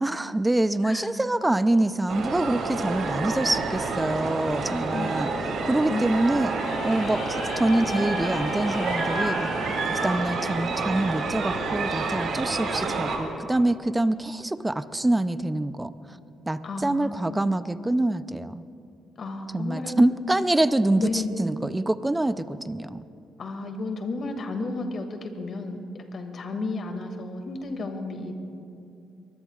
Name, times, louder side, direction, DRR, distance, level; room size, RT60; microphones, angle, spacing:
voice 1, 0.0-5.3 5.6-6.6 6.8-16.2 16.5-18.6 19.5-23.0, right 1 dB, 15° right, 12 dB, 0.6 m, -25 dB
sound 1, 2.1-13.2, right 3 dB, 70° right, 2.9 m, -29 dB
voice 2, 4.6-5.4 5.9-6.8 16.6-17.5 19.2-20.0 20.9-21.5 23.4-28.3, left 3 dB, 55° left, 5 dB, 2.2 m, -33 dB
sound 2, 6.4-12.3, left 4 dB, 85° left, 2.0 m, -38 dB
24.0 x 21.0 x 2.5 m, 2.6 s
cardioid pair, 90°, 0 cm